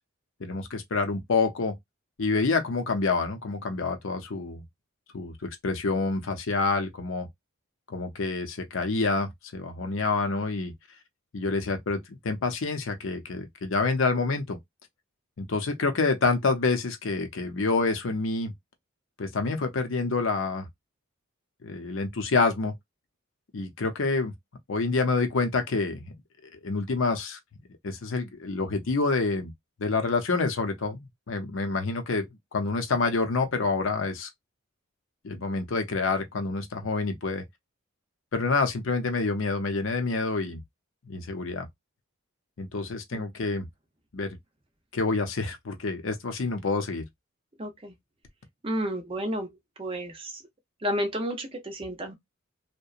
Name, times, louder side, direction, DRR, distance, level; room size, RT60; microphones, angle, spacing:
voice 1, 0.4-1.8 2.2-4.6 5.1-7.3 7.9-10.7 11.3-14.6 15.4-18.5 19.2-20.7 21.6-22.7 23.5-24.3 24.7-26.0 26.5-27.4 27.8-29.5 29.8-34.3 35.2-37.4 38.3-40.6 41.1-41.7 42.6-43.7 44.1-44.4 44.9-47.0, left 3 dB, 65° left, 0.6 m, -27 dB
voice 2, 47.6-47.9 48.6-49.5 49.8-50.4 50.8-52.1, equal, 25° right, 0.5 m, -31 dB
2.8 x 2.2 x 2.4 m
head